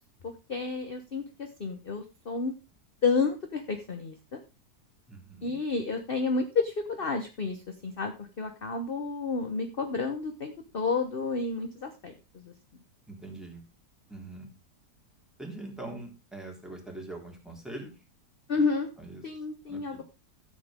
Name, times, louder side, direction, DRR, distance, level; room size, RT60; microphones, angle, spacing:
voice 1, 0.2-2.5 3.0-4.4 5.4-12.5 18.5-18.9 19.2-20.0, left 4 dB, 35° left, 6 dB, 1.3 m, -31 dB
voice 2, 5.1-5.6 13.1-13.6 14.1-14.5 15.4-17.9 19.0-19.2 19.7-20.0, right 2 dB, ahead, 1 dB, 3.4 m, -42 dB
14.0 x 8.2 x 3.7 m, 0.28 s
omnidirectional pair, 1.7 m